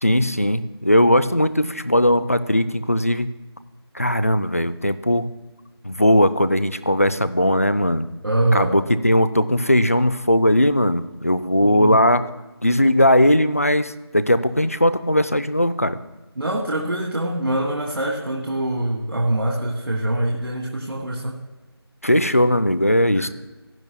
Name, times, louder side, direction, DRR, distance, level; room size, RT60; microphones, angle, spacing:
voice 1, 0.0-3.3 3.9-5.3 5.8-8.1 8.5-12.2 12.6-16.0 22.0-23.3, left 1 dB, 35° left, 13 dB, 0.4 m, -18 dB
voice 2, 8.2-8.8 11.6-12.0 16.4-21.3 23.1-23.3, right 1 dB, 65° right, -1 dB, 1.6 m, -24 dB
18.0 x 10.5 x 2.2 m, 1.1 s
figure-of-eight pair, 175°, 14 cm